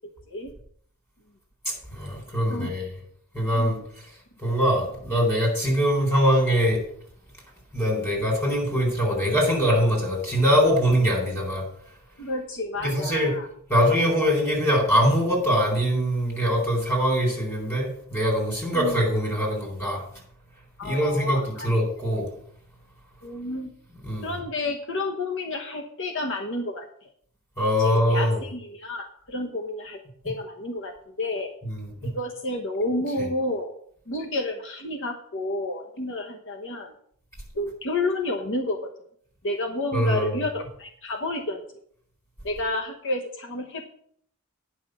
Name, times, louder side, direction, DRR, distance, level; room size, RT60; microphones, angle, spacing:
voice 1, 1.6-2.9 3.3-4.0 4.4-6.8 7.7-11.6 12.8-13.3 13.7-20.0 20.8-22.3 24.0-24.3 27.6-28.4 31.7-31.9 39.9-40.3, equal, 10° left, 0 dB, 4.2 m, -23 dB
voice 2, 12.2-13.5 18.7-19.0 20.8-21.7 23.2-23.7 24.2-27.1 27.8-31.5 32.0-33.7 34.1-36.9 37.5-38.9 39.4-41.6 42.4-43.8, left 2 dB, 60° left, 4 dB, 1.1 m, -30 dB
9.6 x 5.8 x 7.9 m, 0.64 s
head